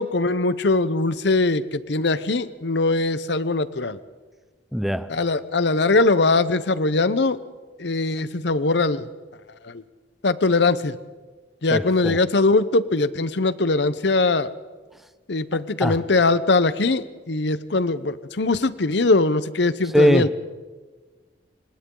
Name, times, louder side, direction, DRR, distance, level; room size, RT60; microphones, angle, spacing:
voice 1, 0.0-4.0 5.1-7.4 7.8-9.1 10.2-11.0 11.6-14.5 15.3-20.3, left 3 dB, 65° left, 15 dB, 0.8 m, -21 dB
voice 2, 4.7-5.1 11.7-12.2 15.8-16.0 19.9-20.3, equal, ahead, 12 dB, 0.7 m, -20 dB
28.5 x 25.5 x 3.9 m, 1.4 s
head